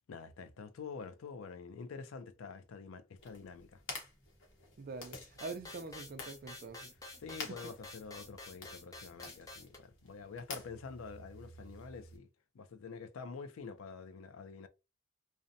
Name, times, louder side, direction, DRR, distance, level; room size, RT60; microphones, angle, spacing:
voice 1, 0.1-3.8 7.2-12.3 12.5-14.7, left 5 dB, 80° left, 0.4 m, -47 dB
sound 1, 3.2-12.2, left 3 dB, 60° left, 0.9 m, -50 dB
voice 2, 4.8-6.9, right 3 dB, 45° right, 0.4 m, -45 dB
sound 2, 5.4-9.8, left 2 dB, 15° left, 0.5 m, -50 dB
2.7 x 2.1 x 2.5 m
head